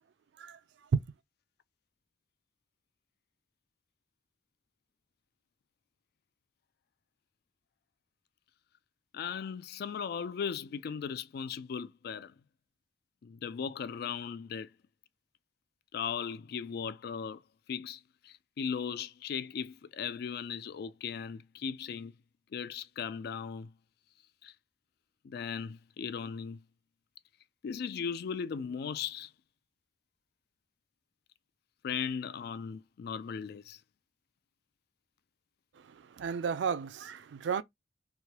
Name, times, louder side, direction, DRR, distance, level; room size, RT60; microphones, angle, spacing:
voice 1, 9.1-12.3 13.2-14.7 15.9-17.4 17.7-22.1 22.5-23.7 24.4-24.5 25.2-26.6 27.6-29.3 31.8-33.8, left 6 dB, 60° left, 0.3 m, -37 dB
voice 2, 36.2-37.6, right 6 dB, 65° right, 0.3 m, -32 dB
3.1 x 2.2 x 2.9 m
head